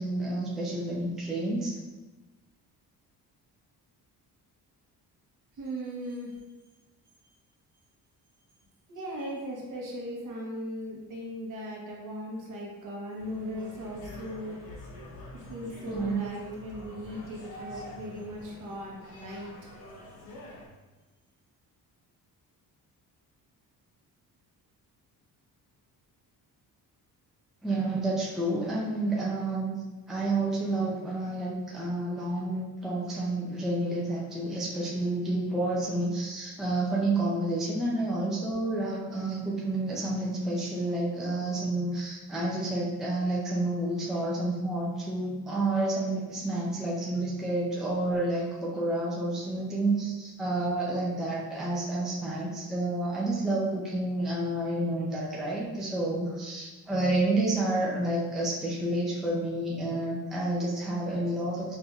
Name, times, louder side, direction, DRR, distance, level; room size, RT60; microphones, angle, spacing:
voice 1, 0.0-1.7 15.9-16.2 27.6-29.7 30.1-61.8, right 2 dB, ahead, -5 dB, 0.4 m, -29 dB
voice 2, 5.6-6.3 8.9-14.6 15.3-19.5, equal, 55° right, -2 dB, 1.0 m, -38 dB
sound 1, 13.2-20.7, left 1 dB, 70° left, 1.0 m, -46 dB
5.6 x 2.6 x 2.3 m, 1.2 s
cardioid pair, 145°, 38 cm